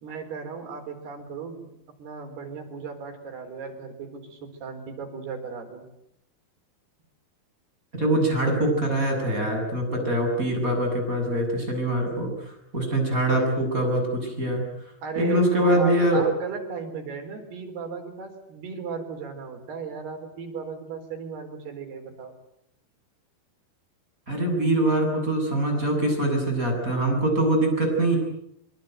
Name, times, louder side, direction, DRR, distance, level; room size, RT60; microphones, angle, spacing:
voice 1, 0.0-5.9 15.0-22.3, right 5 dB, 85° right, 4 dB, 6.2 m, -35 dB
voice 2, 7.9-14.6 15.2-16.2 24.3-28.2, right 1 dB, 20° right, 2 dB, 8.1 m, -23 dB
24.5 x 24.0 x 9.3 m, 0.75 s
omnidirectional pair, 4.5 m